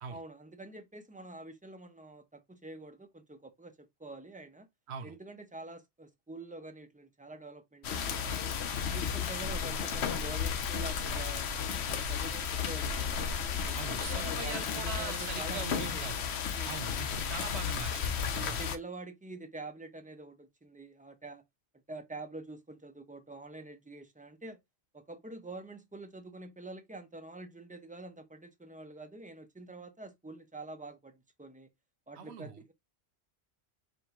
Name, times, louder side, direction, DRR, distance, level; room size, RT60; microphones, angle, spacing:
voice 1, 0.1-4.7 5.0-8.6 8.9-11.5 11.9-16.0 16.5-16.8 18.4-21.4 21.9-24.6 24.9-31.7 32.1-32.7, right 2 dB, 10° right, 0.6 m, -46 dB
sound 1, 7.8-18.8, left 7 dB, 80° left, 1.0 m, -33 dB
voice 2, 13.7-16.3 16.6-18.6 32.2-32.6, right 6 dB, 80° right, 1.0 m, -42 dB
5.2 x 2.5 x 2.9 m
omnidirectional pair, 1.1 m